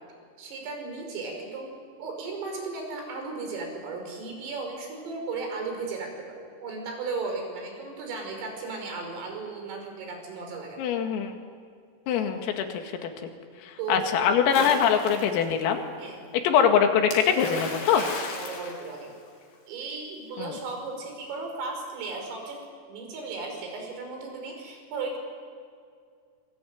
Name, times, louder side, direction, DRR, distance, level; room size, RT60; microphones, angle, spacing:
voice 1, 0.4-1.7 2.0-10.8 13.8-14.3 16.0-16.2 17.9-19.1 19.7-22.6 22.9-25.2, right 3 dB, 80° right, 3 dB, 8.0 m, -35 dB
voice 2, 10.8-11.4 12.1-13.1 13.6-15.8 16.4-18.0 20.4-20.5, left 7 dB, 90° left, 5 dB, 4.7 m, -23 dB
Splash splatter, 14.5-15.5 17.1-19.6, left 3 dB, 65° left, 5.8 m, -36 dB
25.5 x 23.0 x 9.3 m, 2.2 s
omnidirectional pair, 5.9 m